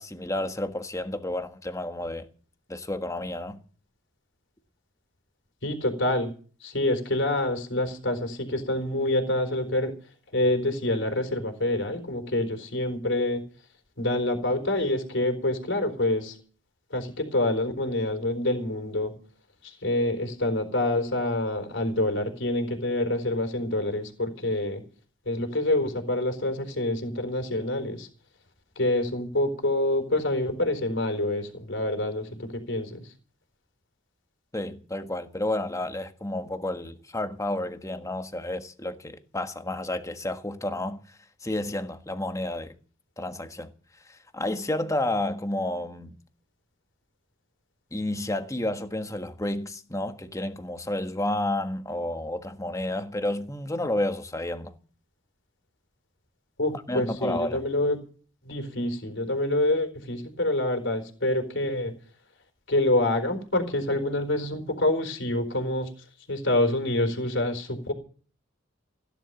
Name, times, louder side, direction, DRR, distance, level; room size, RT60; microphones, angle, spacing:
voice 1, 0.0-2.2 2.7-3.6 34.5-41.0 41.4-42.7 43.2-43.7 44.1-46.2 47.9-54.7 56.9-57.6, left 1 dB, 15° left, 1.5 m, -31 dB
voice 2, 5.6-6.3 6.6-9.9 10.3-13.4 14.0-16.4 16.9-19.2 19.6-24.8 25.3-28.1 28.8-33.0 56.6-58.0 58.4-61.9 62.7-65.9 66.3-67.9, left 1 dB, 60° left, 4.1 m, -26 dB
16.5 x 12.0 x 7.0 m
head